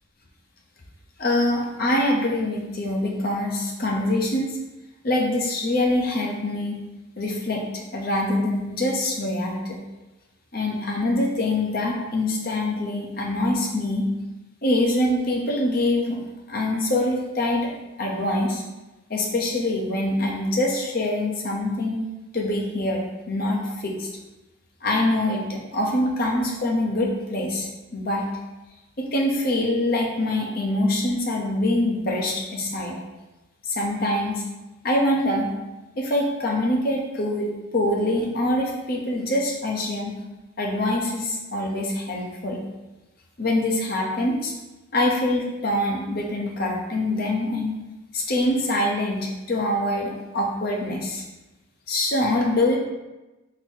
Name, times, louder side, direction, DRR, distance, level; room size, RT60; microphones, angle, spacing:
voice 1, 1.2-4.6 5.0-6.8 7.2-9.8 10.5-14.1 14.6-16.2 16.5-17.7 18.0-18.6 19.1-22.0 22.3-24.1 24.8-28.3 29.1-33.0 33.6-34.4 34.8-35.5 36.0-40.1 40.6-42.7 43.4-44.5 44.9-47.7 48.1-51.2 51.9-52.8, left 1 dB, 50° left, -1 dB, 0.8 m, -24 dB
4.0 x 2.9 x 4.5 m, 1.1 s
head